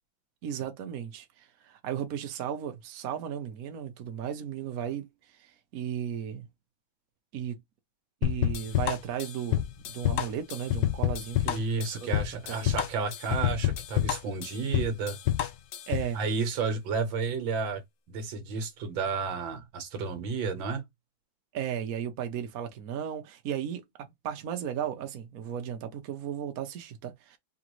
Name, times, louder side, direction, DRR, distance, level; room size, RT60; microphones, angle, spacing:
voice 1, 0.4-5.1 5.4-6.5 7.3-7.6 8.2-11.7 11.9-12.1 12.5-12.7 15.9-16.2 21.5-27.4, right 9 dB, 60° right, 1.0 m, -35 dB
sound 1, 8.2-16.1, left 13 dB, 70° left, 1.3 m, -28 dB
voice 2, 11.4-15.2 16.1-17.8 18.1-20.8, right 4 dB, 75° right, 1.8 m, -31 dB
4.9 x 3.1 x 3.0 m
omnidirectional pair, 2.2 m